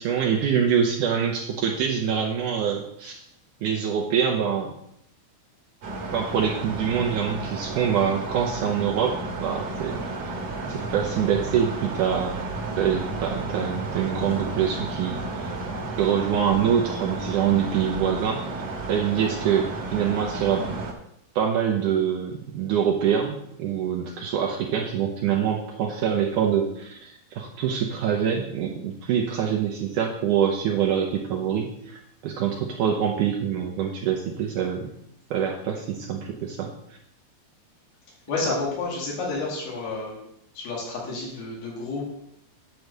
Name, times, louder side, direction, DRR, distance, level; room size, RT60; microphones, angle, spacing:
voice 1, 0.0-3.2 3.6-4.7 6.1-10.0 10.7-12.4 12.8-15.5 16.0-18.4 18.9-20.9 21.4-34.9 35.3-36.7, right 8 dB, 75° right, 1 dB, 1.9 m, -25 dB
sound 1, 5.8-20.9, right 2 dB, 55° right, 2.0 m, -32 dB
voice 2, 38.3-40.2 40.5-42.1, left 3 dB, 80° left, -4 dB, 4.1 m, -30 dB
10.0 x 4.6 x 6.7 m, 0.76 s
omnidirectional pair, 4.5 m